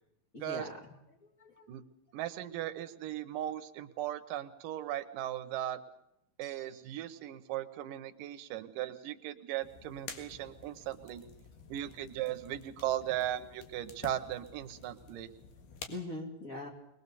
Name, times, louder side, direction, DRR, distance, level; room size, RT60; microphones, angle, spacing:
voice 1, 0.3-0.9 1.2-1.7 15.9-16.7, left 2 dB, 25° left, 2 dB, 2.1 m, -42 dB
voice 2, 2.1-5.8 6.4-11.2 11.7-15.3, right 12 dB, 70° right, 10 dB, 2.4 m, -37 dB
sound 1, 6.4-7.4, right 5 dB, 30° right, 1.1 m, -61 dB
sound 2, 9.6-15.9, left 6 dB, 65° left, 3.3 m, -50 dB
21.5 x 20.5 x 6.9 m, 0.83 s
omnidirectional pair, 4.3 m